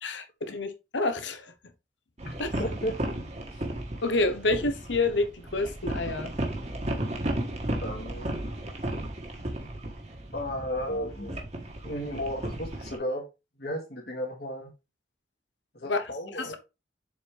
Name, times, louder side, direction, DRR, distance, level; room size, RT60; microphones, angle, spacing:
voice 1, 0.0-1.5 2.4-2.5 4.0-6.4 15.8-16.0 16.4-16.6, left 2 dB, 85° left, 1.1 m, -28 dB
voice 2, 2.2-3.0 7.8-8.4 10.3-11.5 11.8-13.3 13.6-14.7 15.7-16.6, equal, 60° left, 2.1 m, -34 dB
sound 1, 2.2-13.0, right 1 dB, 35° right, 1.5 m, -34 dB
7.0 x 4.4 x 3.4 m
head